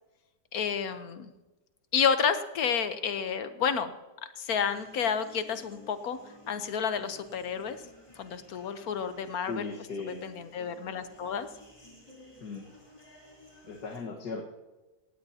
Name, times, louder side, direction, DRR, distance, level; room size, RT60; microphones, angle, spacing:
voice 1, 0.5-1.3 1.9-3.9 4.4-6.2 6.5-7.8 8.2-9.7 10.2-11.5, left 7 dB, 65° left, 10 dB, 1.4 m, -30 dB
sound 1, 4.7-14.0, left 1 dB, 20° left, 3.4 m, -55 dB
voice 2, 9.5-10.2 12.4-12.7 13.6-14.5, left 4 dB, 85° left, 0 dB, 2.1 m, -37 dB
18.0 x 16.0 x 2.8 m, 1.1 s
omnidirectional pair, 1.7 m